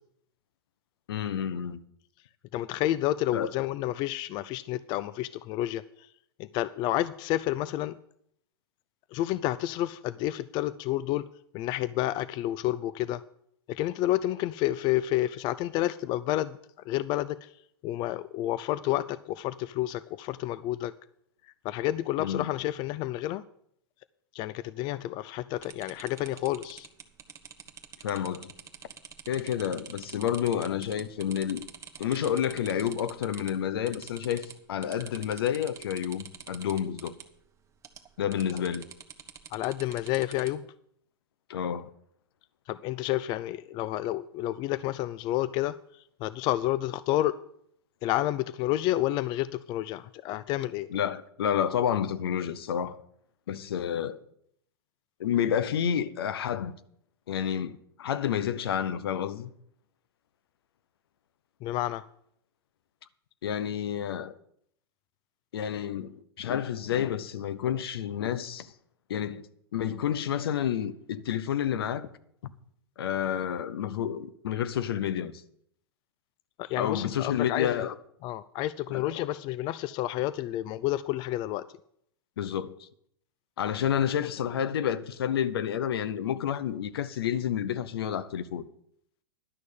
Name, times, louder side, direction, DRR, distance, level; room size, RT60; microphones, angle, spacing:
voice 1, 1.1-1.8 3.3-3.5 22.2-22.5 28.0-28.5 29.3-31.7 32.0-37.1 38.2-38.9 41.5-41.9 50.9-53.0 53.5-54.2 55.2-56.7 57.3-59.5 63.4-64.3 65.5-68.7 69.1-69.4 69.7-72.1 72.4-72.5 73.0-75.3 76.8-77.9 78.9-79.2 82.4-82.9 83.6-88.7, left 9 dB, 65° left, 0.8 m, -30 dB
voice 2, 2.5-6.1 6.4-8.0 9.1-11.3 11.5-13.2 13.7-16.6 16.9-17.5 17.8-20.9 21.6-23.4 24.3-26.9 39.5-40.6 42.7-45.7 46.2-47.3 48.0-50.9 61.6-62.1 76.6-77.9 78.2-81.6, left 14 dB, 35° left, 0.4 m, -30 dB
sound 1, 25.6-33.5 33.8-34.6 34.8-37.3 37.8-38.1 38.3-40.5, right 7 dB, 20° right, 1.1 m, -45 dB
11.5 x 6.3 x 8.4 m
hypercardioid pair, 100°, 13 cm